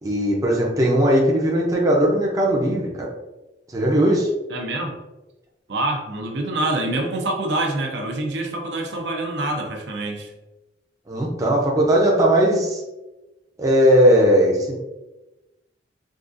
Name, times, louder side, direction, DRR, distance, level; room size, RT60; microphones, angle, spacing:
voice 1, 0.0-3.1 3.7-4.3 11.1-12.8 13.6-14.7, equal, 20° right, -3 dB, 0.5 m, -18 dB
voice 2, 4.5-4.9 5.7-10.3, right 2 dB, 70° right, 2 dB, 0.5 m, -26 dB
3.7 x 2.4 x 2.5 m, 1.0 s
head